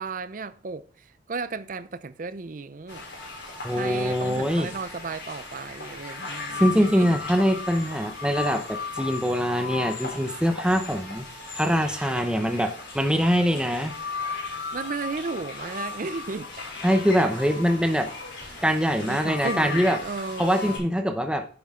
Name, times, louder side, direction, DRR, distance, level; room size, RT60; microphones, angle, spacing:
voice 1, 0.0-3.1 3.7-7.2 14.7-16.7 17.3-17.4 18.5-18.6 19.0-20.8, right 4 dB, 45° right, 0.5 m, -34 dB
sound 1, 2.9-20.8, left 4 dB, 65° left, 5.7 m, -36 dB
voice 2, 3.6-4.7 6.6-11.3 11.6-13.9 16.8-18.1 18.6-20.0 20.4-21.4, equal, 5° right, 0.8 m, -23 dB
10.5 x 7.8 x 3.7 m
head